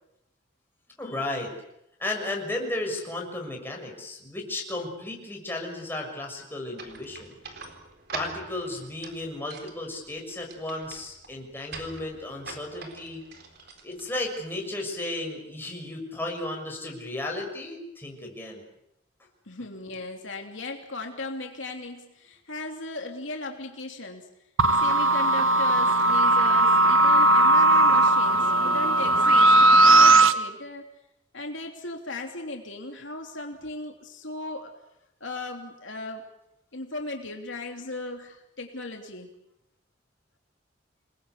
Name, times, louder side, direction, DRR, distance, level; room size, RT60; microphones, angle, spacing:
voice 1, 1.0-1.5 2.0-7.3 8.1-13.2 13.8-18.6, left 2 dB, 10° left, 0 dB, 6.5 m, -34 dB
sound 1, 6.8-14.6, right 4 dB, 50° right, 4.1 m, -44 dB
voice 2, 19.5-24.3 24.8-30.8 31.3-34.7 35.2-36.2 36.7-39.3, left 2 dB, 70° left, 2 dB, 3.0 m, -37 dB
sound 2, 24.6-30.3, right 2 dB, 90° right, 1.4 m, -18 dB
28.0 x 21.0 x 8.3 m, 0.83 s
head